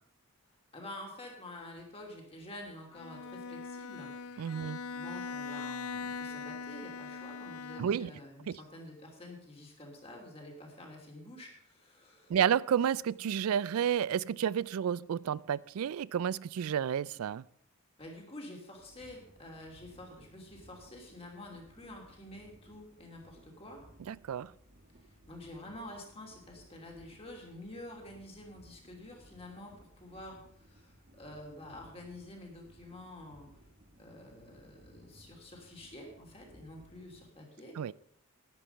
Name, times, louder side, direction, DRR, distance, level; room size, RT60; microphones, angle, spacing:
voice 1, 0.7-4.1 4.9-12.3 18.0-23.8 25.2-33.5 34.0-37.9, left 1 dB, 25° left, 2.8 m, -48 dB
Bowed string instrument, 2.9-8.2, left 4 dB, 90° left, 0.5 m, -41 dB
voice 2, 4.4-4.8 7.8-8.1 8.5-8.6 12.3-17.4 24.1-24.5 37.8-37.9, right 8 dB, 85° right, 0.3 m, -31 dB
sound 1, 18.7-37.3, equal, 45° right, 1.8 m, -60 dB
11.0 x 10.0 x 5.6 m
head